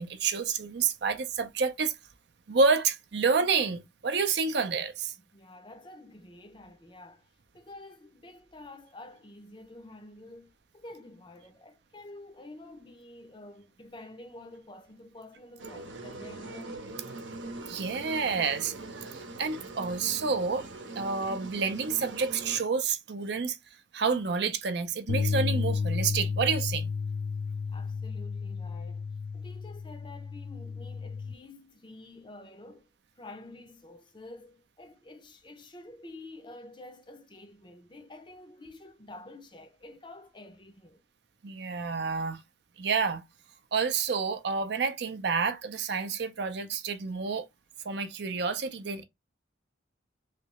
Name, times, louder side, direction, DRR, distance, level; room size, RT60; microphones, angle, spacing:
voice 1, 0.0-1.9 2.5-5.1 17.7-20.7 21.0-23.6 23.9-26.9 41.4-42.4 42.8-43.2 43.7-47.5 47.8-49.0, right 5 dB, 60° right, 0.5 m, -29 dB
voice 2, 5.3-7.3 7.5-16.8 27.7-29.1 29.3-32.9 33.2-41.0, left 2 dB, 25° left, 0.5 m, -49 dB
sound 1, 15.6-22.6, right 2 dB, 75° right, 0.8 m, -42 dB
sound 2, 25.1-31.3, left 5 dB, 75° left, 0.3 m, -32 dB
3.2 x 2.8 x 3.0 m
head